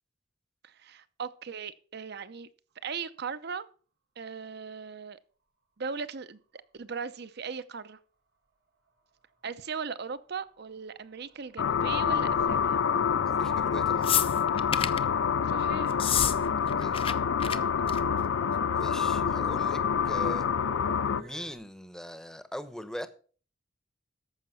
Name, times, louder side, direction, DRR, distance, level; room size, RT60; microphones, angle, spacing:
voice 1, 0.6-2.5 2.8-3.6 4.2-5.2 5.8-6.4 6.7-8.0 9.4-12.8 15.5-16.0 17.4-17.7, right 5 dB, 55° right, 0.7 m, -38 dB
sound 1, 8.9-21.6, right 2 dB, 90° right, 2.6 m, -51 dB
sound 2, 11.6-21.2, left 7 dB, 80° left, 0.4 m, -27 dB
voice 2, 13.3-14.1 16.8-17.0 18.7-20.5 21.1-23.1, equal, 5° left, 0.8 m, -41 dB
sound 3, 14.0-15.0 15.9-16.4 16.6-17.1 17.4-17.6 17.9-18.2 19.1-19.2, left 9 dB, 30° left, 0.5 m, -28 dB
14.0 x 5.8 x 5.6 m
head